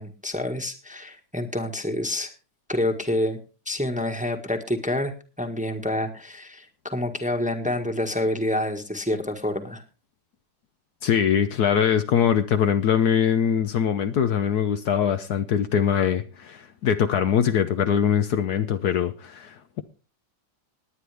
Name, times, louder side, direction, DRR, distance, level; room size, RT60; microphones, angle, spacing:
voice 1, 0.0-2.3 2.7-3.4 3.6-9.8, left 1 dB, 5° right, 1.4 m, -28 dB
voice 2, 11.0-19.8, left 8 dB, 65° left, 1.2 m, -22 dB
19.5 x 9.6 x 3.4 m
omnidirectional pair, 1.9 m